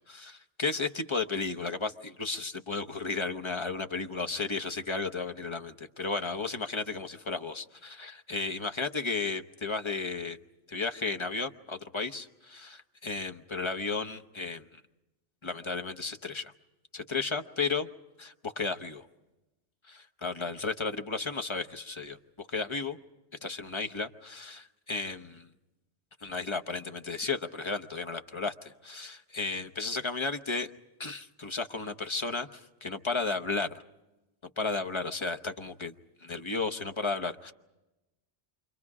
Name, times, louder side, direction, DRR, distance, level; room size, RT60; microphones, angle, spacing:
voice 1, 0.1-10.4 10.7-14.8 15.4-16.5 16.9-17.9 18.2-19.1 19.9-23.0 23.4-25.5 26.2-30.7 31.0-33.8 34.6-35.9 36.2-37.5, left 4 dB, 30° left, 7 dB, 0.9 m, -34 dB
28.5 x 25.5 x 4.9 m, 1.0 s
omnidirectional pair, 1.1 m